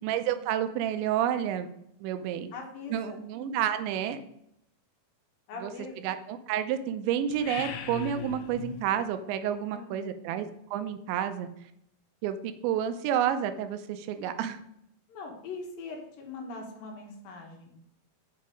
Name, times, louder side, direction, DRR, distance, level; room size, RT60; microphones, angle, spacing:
voice 1, 0.0-1.7 2.0-2.5 2.9-4.2 5.6-5.7 6.0-11.5 12.2-14.6, right 10 dB, 90° right, 9 dB, 3.0 m, -30 dB
voice 2, 2.5-3.2 5.5-5.9 9.7-10.1 15.1-17.7, left 3 dB, 65° left, 1 dB, 2.7 m, -41 dB
sound 1, 7.3-8.9, left 9 dB, 90° left, 2.9 m, -38 dB
7.3 x 5.6 x 5.1 m, 0.75 s
omnidirectional pair, 5.1 m